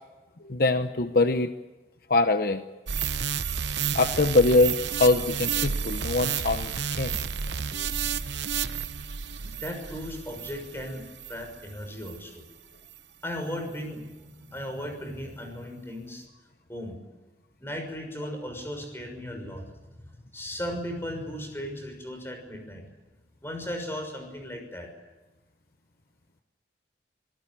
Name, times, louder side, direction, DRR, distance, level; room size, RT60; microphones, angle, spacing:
voice 1, 0.5-1.5 2.1-2.6 3.9-7.2, left 2 dB, 55° left, 9 dB, 0.9 m, -23 dB
sound 1, 2.9-11.5 12.0-12.2, right 7 dB, 85° right, 0.9 m, -31 dB
voice 2, 9.4-12.4 13.2-14.0 14.5-16.2 16.7-17.0 17.6-19.6 20.3-22.8 23.4-24.9, equal, 15° left, 4 dB, 6.3 m, -36 dB
26.0 x 18.5 x 8.8 m, 1.2 s
head